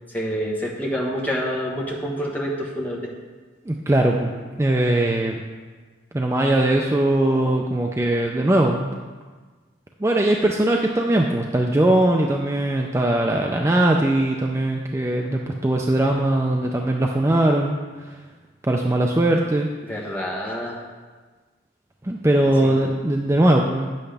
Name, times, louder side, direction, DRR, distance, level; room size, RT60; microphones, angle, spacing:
voice 1, 0.1-3.1 19.8-20.8 22.6-22.8, equal, 10° left, -3 dB, 1.1 m, -27 dB
voice 2, 3.7-4.3 4.6-5.4 6.1-8.9 10.0-17.8 18.7-19.7 22.0-24.0, right 1 dB, 15° right, 1 dB, 0.4 m, -20 dB
9.4 x 7.8 x 3.4 m, 1.4 s
head